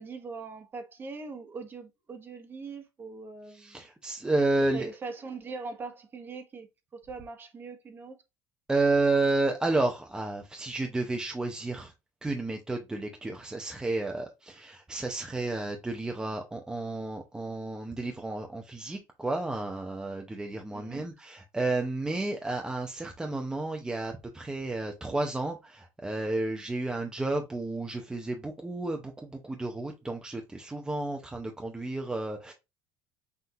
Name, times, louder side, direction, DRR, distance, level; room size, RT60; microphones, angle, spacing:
voice 1, 0.0-3.8 4.7-6.7 6.9-8.2 20.7-21.1, right 4 dB, 30° right, 1.0 m, -41 dB
voice 2, 3.5-4.9 8.7-11.9 12.2-32.5, right 2 dB, 10° right, 0.6 m, -31 dB
5.7 x 2.6 x 2.7 m
cardioid pair, 115°, 7 cm